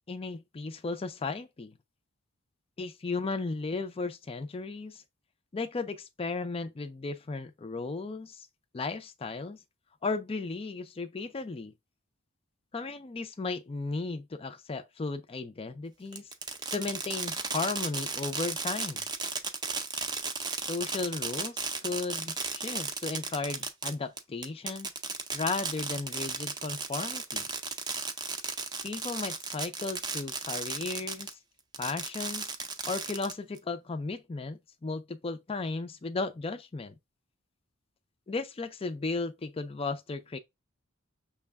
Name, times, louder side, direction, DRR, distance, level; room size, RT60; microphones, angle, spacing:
voice 1, 0.1-1.8 2.8-5.0 5.5-8.5 8.7-9.6 10.0-11.7 12.7-16.3 16.7-19.0 20.7-24.9 25.3-27.5 28.8-31.3 31.8-32.5 32.9-37.0 38.3-40.4, left 3 dB, 25° left, 0.4 m, -35 dB
Fireworks, 16.1-31.3 31.7-33.6, right 4 dB, 20° right, 0.5 m, -35 dB
6.2 x 2.2 x 3.4 m
head